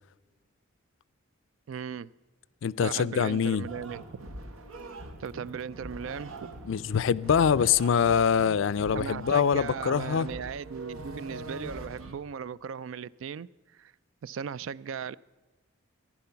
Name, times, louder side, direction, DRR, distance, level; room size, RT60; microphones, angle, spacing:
voice 1, 1.7-2.1 2.8-4.0 5.2-6.5 8.9-13.9 14.2-15.2, right 7 dB, 70° right, 0.4 m, -37 dB
voice 2, 2.6-3.7 6.6-10.3, left 7 dB, 65° left, 0.4 m, -24 dB
sound 1, 3.7-12.1, right 2 dB, 85° right, 1.3 m, -43 dB
14.5 x 11.0 x 5.7 m
head